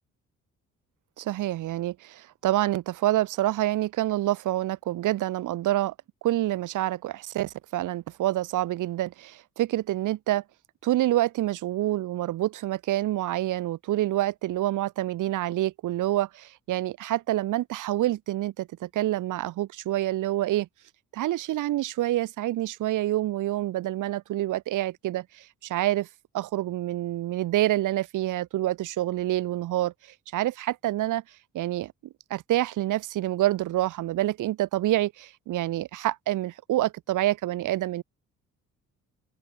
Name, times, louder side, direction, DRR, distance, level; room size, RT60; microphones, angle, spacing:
voice 1, 1.2-5.9 6.2-10.4 10.8-20.7 21.1-26.1 26.3-29.9 30.3-31.2 31.5-31.9 32.3-38.0, right 15 dB, 85° right, 3.6 m, -27 dB
open air
cardioid pair, 90°, 30 cm